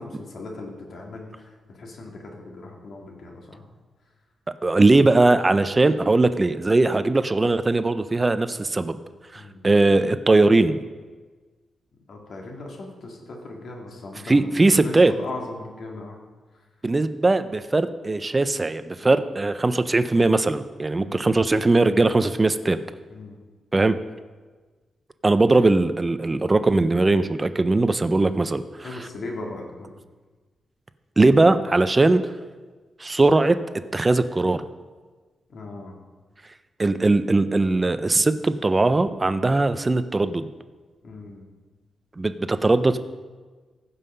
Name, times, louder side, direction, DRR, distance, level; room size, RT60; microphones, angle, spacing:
voice 1, 0.0-3.6 9.3-9.6 12.1-16.2 16.5-16.7 21.0-21.3 23.1-23.4 28.8-29.9 35.5-35.9 38.3-38.4 41.0-41.4, left 2 dB, 55° left, 0 dB, 2.1 m, -38 dB
voice 2, 4.6-9.0 9.3-10.8 14.3-15.1 16.8-22.8 23.7-24.0 25.2-28.6 31.2-32.2 33.0-33.6 33.9-34.6 36.8-40.5 42.2-43.0, right 2 dB, 20° right, 12 dB, 0.5 m, -20 dB
15.0 x 5.6 x 5.6 m, 1.3 s
wide cardioid pair, 160°, 0 cm